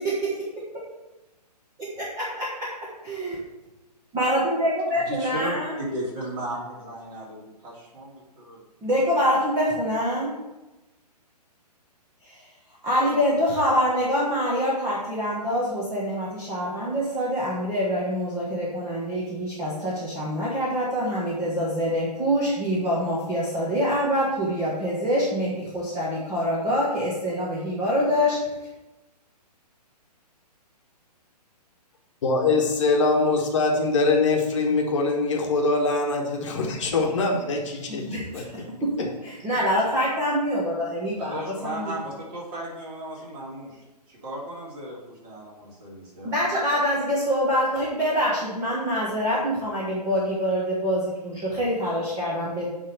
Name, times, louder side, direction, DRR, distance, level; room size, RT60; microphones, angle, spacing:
voice 1, 2.0-2.7 3.0-3.3 4.1-5.7 8.8-10.3 12.2-12.4 12.8-28.4 37.9-38.9 39.2-41.9 46.2-52.7, equal, 15° right, -7 dB, 1.6 m, -25 dB
voice 2, 4.9-5.5 5.8-8.6 41.2-46.4, right 1 dB, 35° right, -5 dB, 3.1 m, -36 dB
voice 3, 32.2-38.1 38.3-38.4 39.0-39.1, left 3 dB, 45° left, 1 dB, 1.4 m, -23 dB
9.8 x 3.7 x 6.7 m, 1.0 s
figure-of-eight pair, 125°, 21 cm